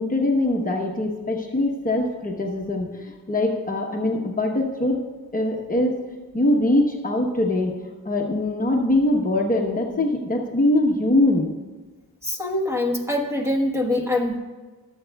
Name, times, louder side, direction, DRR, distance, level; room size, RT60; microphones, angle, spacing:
voice 1, 0.0-5.0 5.3-6.0 6.3-7.7 8.0-11.5, left 1 dB, 25° left, 0 dB, 1.0 m, -22 dB
voice 2, 12.2-14.4, left 1 dB, 5° right, 1 dB, 1.3 m, -24 dB
24.5 x 8.2 x 2.3 m, 1.3 s
wide cardioid pair, 125°, 36 cm